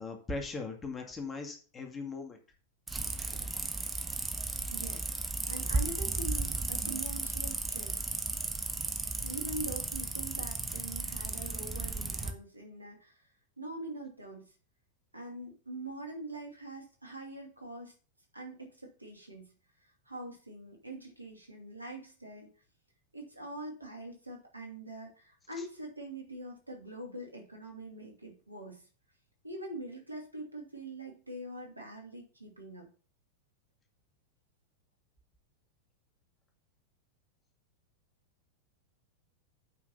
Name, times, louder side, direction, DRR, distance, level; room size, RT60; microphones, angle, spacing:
voice 1, 0.0-2.4, left 3 dB, 20° left, 3 dB, 2.3 m, -39 dB
sound 1, 2.9-12.3, right 3 dB, 10° right, 1.2 m, -35 dB
voice 2, 4.3-5.1 5.5-8.0 9.2-13.3 13.6-14.5 15.1-17.9 18.3-19.5 19.8-22.5 23.1-28.9 29.4-32.9, right 1 dB, 85° right, 1 dB, 2.6 m, -44 dB
8.4 x 5.9 x 5.7 m, 0.39 s
figure-of-eight pair, 90°, 0 cm